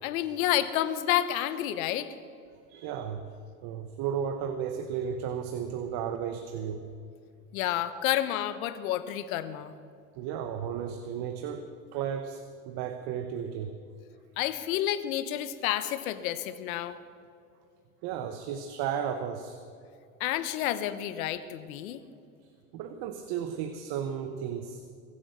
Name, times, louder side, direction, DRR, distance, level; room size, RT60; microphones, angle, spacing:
voice 1, 0.0-2.1 7.5-9.7 14.4-17.0 20.2-22.0, left 12 dB, 85° left, 13 dB, 1.1 m, -30 dB
voice 2, 2.7-3.2 3.6-6.9 10.1-13.7 18.0-19.6 22.7-24.8, right 8 dB, 65° right, 8 dB, 1.2 m, -34 dB
22.5 x 8.5 x 6.7 m, 2.3 s
supercardioid pair, 90°, 41 cm